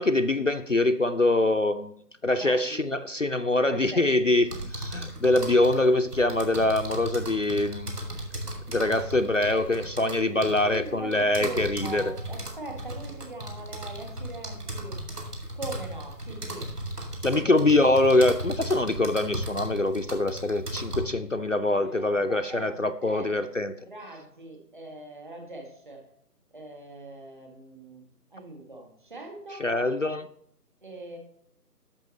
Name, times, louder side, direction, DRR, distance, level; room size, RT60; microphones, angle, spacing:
voice 1, 0.0-1.9 2.2-8.0 8.7-12.1 17.2-23.7 29.6-30.3, left 2 dB, 55° left, 7 dB, 0.5 m, -24 dB
voice 2, 2.3-2.8 3.7-4.1 5.0-5.1 10.0-15.0 15.5-16.7 17.2-18.2 21.7-26.1 26.5-28.0 28.3-29.9 30.8-31.2, right 2 dB, 30° right, 2 dB, 1.8 m, -42 dB
sound 1, 4.5-21.0, right 1 dB, 70° right, 2.6 m, -36 dB
10.5 x 7.2 x 3.1 m, 0.69 s
figure-of-eight pair, 160°, 48 cm